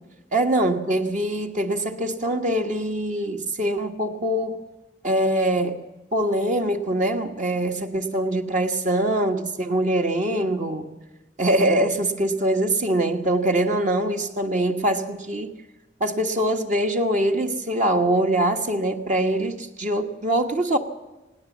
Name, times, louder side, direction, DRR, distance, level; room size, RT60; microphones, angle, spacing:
voice 1, 0.3-4.6 5.0-5.8 6.1-10.9 11.4-15.5 16.0-20.8, right 1 dB, 45° right, 5 dB, 1.5 m, -23 dB
20.0 x 17.5 x 7.3 m, 1.1 s
head